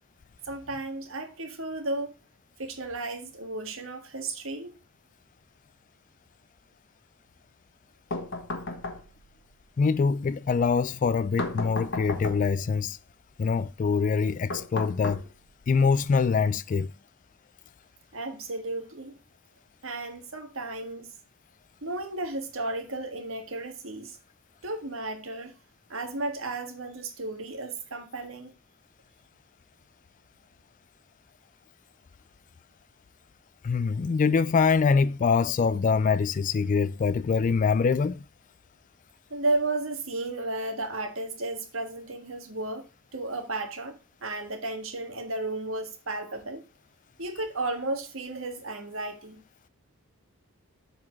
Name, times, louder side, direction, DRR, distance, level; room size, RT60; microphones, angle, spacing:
voice 1, 0.4-2.1 2.6-4.7 18.1-19.1 19.8-21.1 21.8-24.2 24.6-25.5 25.9-28.5 39.3-46.6 47.2-49.4, right 2 dB, 65° right, 1.7 m, -33 dB
Knocking on Door, 8.1-9.4 11.4-12.7 14.5-15.7, left 2 dB, 60° left, 1.2 m, -34 dB
voice 2, 9.8-13.0 13.4-15.2 15.7-16.9 33.6-38.2, left 5 dB, 40° left, 0.3 m, -24 dB
7.5 x 4.3 x 6.0 m
head